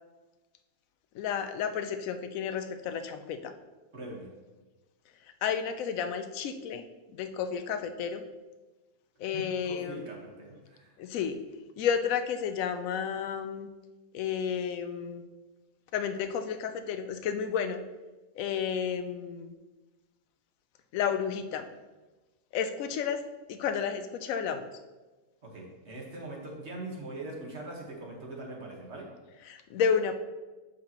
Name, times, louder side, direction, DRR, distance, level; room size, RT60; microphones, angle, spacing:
voice 1, 1.1-3.5 5.4-8.2 9.2-10.1 11.0-11.4 11.8-13.7 14.1-15.2 15.9-17.8 18.4-19.5 20.9-21.7 22.5-23.2 23.5-24.7 29.5-30.2, left 7 dB, 70° left, 8 dB, 1.0 m, -31 dB
voice 2, 3.9-4.3 9.3-11.0 25.4-29.1, right 2 dB, 45° right, -1 dB, 1.7 m, -42 dB
9.5 x 5.6 x 3.0 m, 1.2 s
omnidirectional pair, 1.6 m